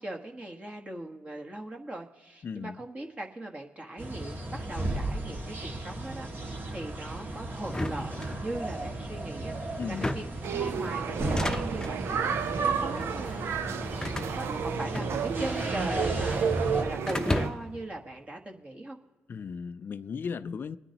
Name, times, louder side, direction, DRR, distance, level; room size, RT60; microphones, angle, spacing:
voice 1, 0.0-19.0, right 1 dB, 30° right, 1.4 m, -40 dB
voice 2, 2.4-2.8 9.8-10.1 19.3-20.8, left 6 dB, 50° left, 0.4 m, -36 dB
sound 1, 4.0-16.8, right 1 dB, 50° right, 2.0 m, -35 dB
sound 2, 7.7-8.8 9.8-10.5 11.2-12.0 12.8-13.2 14.0-15.5 15.8-16.6 17.1-17.8, left 1 dB, 15° left, 0.7 m, -34 dB
sound 3, 10.4-17.5, right 7 dB, 70° right, 0.6 m, -31 dB
25.0 x 9.8 x 2.9 m
cardioid pair, 65°, 5 cm